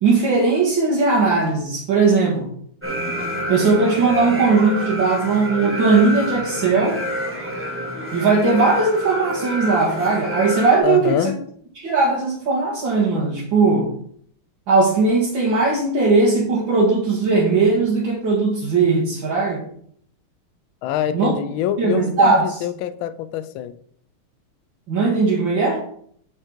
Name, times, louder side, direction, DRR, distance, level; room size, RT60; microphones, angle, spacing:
voice 1, 0.0-2.5 3.5-7.0 8.1-11.3 11.8-13.9 14.7-19.6 21.1-21.3 21.8-22.6 24.9-25.8, right 4 dB, 65° right, -5 dB, 2.4 m, -18 dB
sound 1, 2.8-10.8, equal, 5° right, 1.2 m, -28 dB
voice 2, 10.8-11.4 20.8-23.8, left 10 dB, 75° left, 12 dB, 1.3 m, -25 dB
7.6 x 6.5 x 4.5 m, 0.62 s
omnidirectional pair, 2.4 m